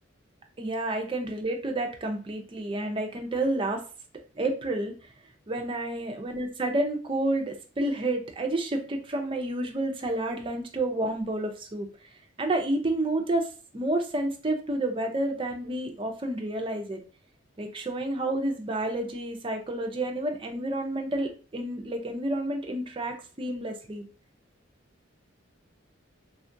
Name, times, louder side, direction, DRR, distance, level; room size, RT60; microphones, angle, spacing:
voice 1, 0.6-3.8 4.4-4.9 5.5-11.9 12.4-17.0 17.6-24.0, right 1 dB, 25° right, 3 dB, 0.5 m, -30 dB
3.6 x 2.3 x 2.6 m, 0.36 s
head